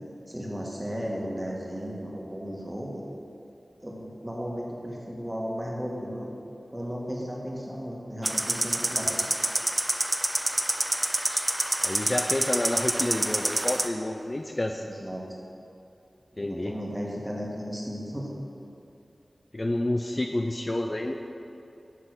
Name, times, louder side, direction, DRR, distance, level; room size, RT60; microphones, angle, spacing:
voice 1, 0.3-3.0 3.8-6.3 6.7-9.3 14.8-15.2 16.3-18.3, equal, 15° right, -2 dB, 1.6 m, -35 dB
sound 1, 8.2-13.9, right 1 dB, 30° right, 0.5 m, -27 dB
voice 2, 11.8-14.8 16.4-16.7 19.5-21.1, left 1 dB, 35° left, 3 dB, 0.4 m, -29 dB
9.8 x 3.7 x 6.0 m, 2.8 s
cardioid pair, 45°, 0 cm